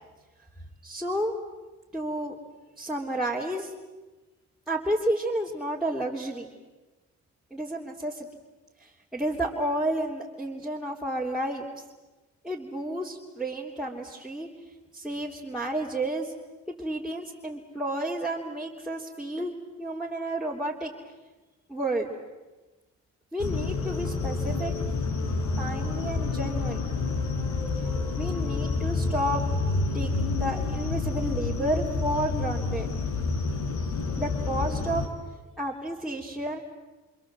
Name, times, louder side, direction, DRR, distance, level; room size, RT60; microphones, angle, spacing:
voice 1, 0.8-1.3 1.9-2.4 2.8-3.7 4.7-6.5 7.5-8.3 8.8-11.8 12.4-14.5 14.9-16.3 16.8-19.5 19.8-20.9 21.7-22.1 23.3-24.7 25.6-26.8 28.2-29.4 29.9-32.9 34.2-35.0 35.6-36.6, right 1 dB, ahead, -4 dB, 3.3 m, -31 dB
sound 1, 23.4-35.1, left 4 dB, 70° left, 4.1 m, -29 dB
28.5 x 27.0 x 7.6 m, 1.2 s
cardioid pair, 90°, 30 cm